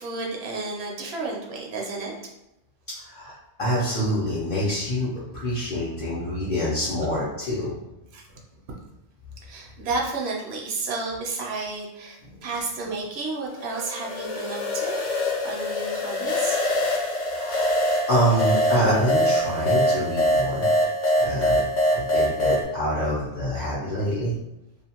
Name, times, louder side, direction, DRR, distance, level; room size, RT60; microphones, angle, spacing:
voice 1, 0.0-2.1 8.1-8.2 9.5-15.1 15.4-16.6, right 3 dB, 70° right, -1 dB, 0.8 m, -31 dB
voice 2, 2.9-7.7 12.2-12.4 17.3-17.8 18.1-20.7 21.2-21.6 21.9-24.3, equal, 55° left, -8 dB, 0.8 m, -26 dB
sound 1, 13.6-22.6, left 1 dB, 80° left, 1.0 m, -24 dB
2.5 x 2.3 x 2.8 m, 0.88 s
omnidirectional pair, 1.2 m